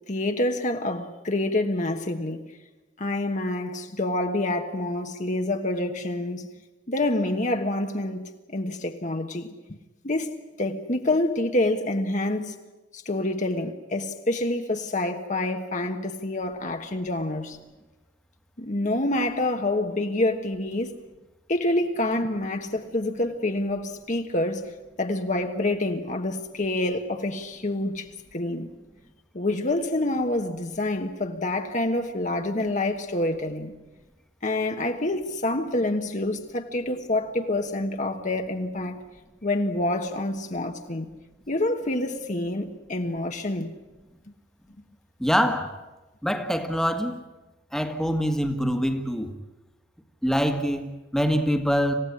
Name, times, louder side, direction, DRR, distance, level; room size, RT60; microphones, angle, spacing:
voice 1, 0.1-2.5 3.0-6.5 6.9-9.5 10.0-12.6 12.9-17.6 18.6-20.9 21.5-24.7 25.0-28.7 29.3-33.7 34.4-39.0 39.4-41.1 41.5-43.7, left 2 dB, 40° left, 1.4 m, -27 dB
voice 2, 45.2-45.7 46.2-47.2 47.7-49.3 50.2-51.9, equal, ahead, 1.7 m, -24 dB
27.5 x 16.0 x 9.9 m
head